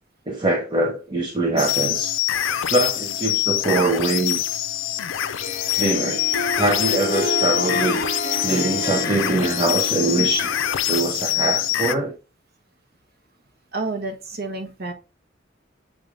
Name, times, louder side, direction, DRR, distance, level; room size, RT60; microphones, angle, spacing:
voice 1, 0.3-2.1 2.7-4.4 5.7-6.2 6.5-8.0 8.4-10.5 10.9-12.1, right 2 dB, 25° right, 0 dB, 0.9 m, -23 dB
sound 1, 1.6-11.9, left 12 dB, 85° left, 0.5 m, -24 dB
Harp, 5.2-11.0, left 1 dB, 55° left, 1.6 m, -29 dB
voice 2, 13.7-14.9, right 3 dB, 55° right, 3 dB, 1.2 m, -29 dB
7.8 x 3.4 x 3.8 m, 0.30 s
head